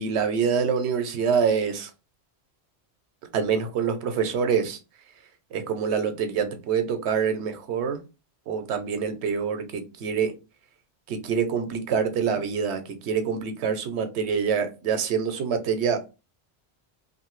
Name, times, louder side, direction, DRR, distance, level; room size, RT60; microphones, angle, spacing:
voice 1, 0.0-1.9 3.3-4.8 5.5-8.0 8.5-10.3 11.1-16.1, right 6 dB, 90° right, 0.9 m, -26 dB
2.6 x 2.6 x 3.0 m
omnidirectional pair, 1.1 m